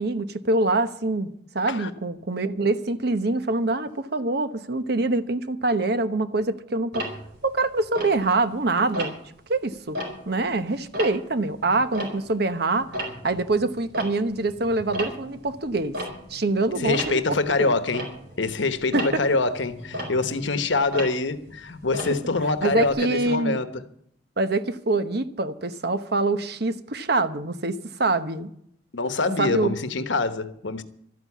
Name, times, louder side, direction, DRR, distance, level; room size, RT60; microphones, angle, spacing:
voice 1, 0.0-7.1 7.4-9.2 9.5-10.0 10.2-12.9 13.2-16.0 16.3-17.2 17.6-17.7 18.9-19.0 22.6-23.6 24.4-28.5 29.4-29.7, right 2 dB, 60° right, 1.0 m, -25 dB
Tick-tock, 6.9-8.6 8.9-9.4 9.8-12.5 12.8-22.9, right 1 dB, 80° right, 4.4 m, -35 dB
voice 2, 16.7-18.1 18.4-23.8 28.9-30.8, left 3 dB, 85° left, 1.1 m, -25 dB
13.0 x 9.5 x 8.5 m
head